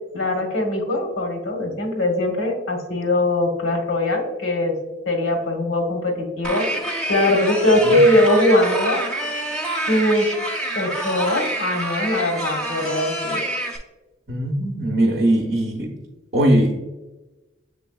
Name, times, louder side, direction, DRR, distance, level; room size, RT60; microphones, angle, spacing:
voice 1, 0.1-4.7 5.1-9.0 9.8-10.4 10.7-13.4, left 1 dB, 85° left, 3 dB, 1.0 m, -21 dB
sound 1, 6.4-13.8, right 1 dB, 5° left, 0.5 m, -27 dB
voice 2, 14.3-15.9 16.3-16.8, right 1 dB, 50° right, 1 dB, 0.6 m, -20 dB
6.8 x 3.4 x 2.3 m, 1.1 s
head